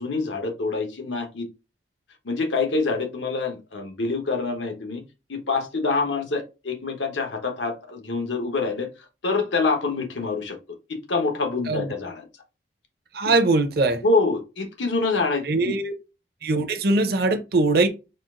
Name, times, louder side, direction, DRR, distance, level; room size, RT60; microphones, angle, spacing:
voice 1, 0.0-1.5 2.2-5.0 5.3-8.9 9.2-10.6 10.9-12.2 13.2-13.3 14.0-15.8, left 3 dB, 90° left, 1.1 m, -26 dB
voice 2, 13.1-14.0 15.4-15.9 16.4-17.9, right 2 dB, 55° right, 0.6 m, -21 dB
4.3 x 2.5 x 3.6 m
head